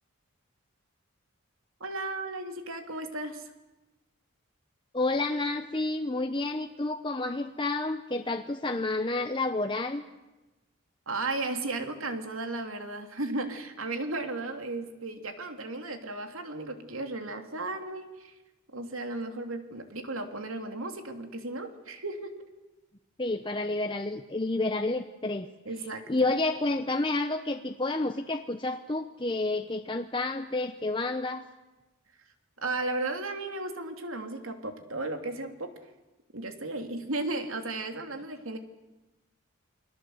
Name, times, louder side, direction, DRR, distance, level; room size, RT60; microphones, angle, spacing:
voice 1, 1.8-3.4 11.1-18.3 18.7-22.3 25.6-26.3 32.6-35.7 36.3-38.6, right 2 dB, 80° right, 6 dB, 3.1 m, -35 dB
voice 2, 4.9-10.0 23.2-25.5 26.1-31.4, left 2 dB, 25° left, 5 dB, 0.9 m, -30 dB
29.0 x 21.0 x 8.0 m, 1.1 s
head